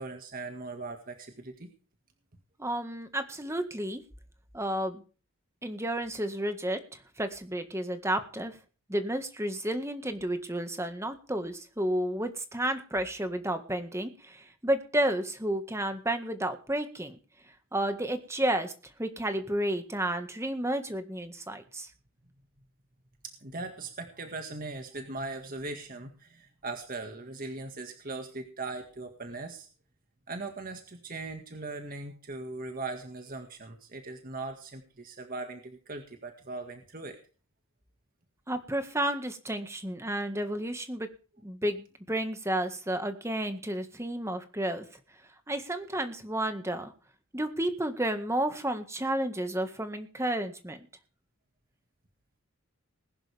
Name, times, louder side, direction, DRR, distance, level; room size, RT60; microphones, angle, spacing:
voice 1, 0.0-1.7 23.2-29.7 30.3-37.2, right 3 dB, 40° right, 5 dB, 2.0 m, -39 dB
voice 2, 2.6-4.0 4.5-5.0 5.6-8.6 8.9-17.2 17.7-21.9 38.5-41.1 41.4-44.9 45.5-46.9 47.3-50.9, right 1 dB, 15° right, 8 dB, 1.8 m, -31 dB
20.5 x 11.0 x 3.5 m, 0.38 s
head